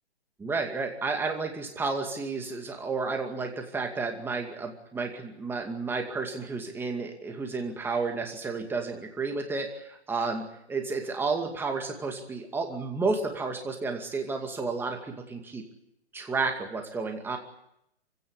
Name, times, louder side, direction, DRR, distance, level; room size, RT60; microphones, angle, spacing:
voice 1, 0.4-15.6 16.1-17.4, right 4 dB, 5° right, 3 dB, 2.3 m, -31 dB
25.0 x 16.5 x 10.0 m, 0.79 s
hypercardioid pair, 150°, 33 cm